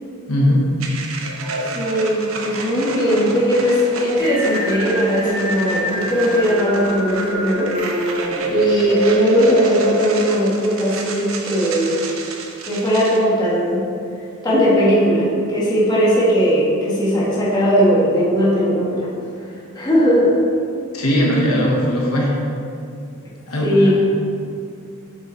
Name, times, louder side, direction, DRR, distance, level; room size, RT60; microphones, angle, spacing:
voice 1, 0.3-0.6 20.9-22.3 23.5-24.0, equal, 80° left, -3 dB, 1.3 m, -18 dB
sound 1, 0.8-13.2, right 3 dB, 65° right, 0.8 m, -32 dB
sound 2, 1.2-5.3 5.6-10.2, right 1 dB, 85° right, 1.5 m, -27 dB
voice 2, 1.7-7.7 8.5-12.0 12.6-13.8 14.4-19.1 19.7-20.4 23.5-24.0, equal, 20° left, -8 dB, 1.4 m, -18 dB
Singing, 4.2-9.3, equal, 15° right, 1.2 m, -27 dB
7.6 x 5.7 x 3.2 m, 2.4 s
head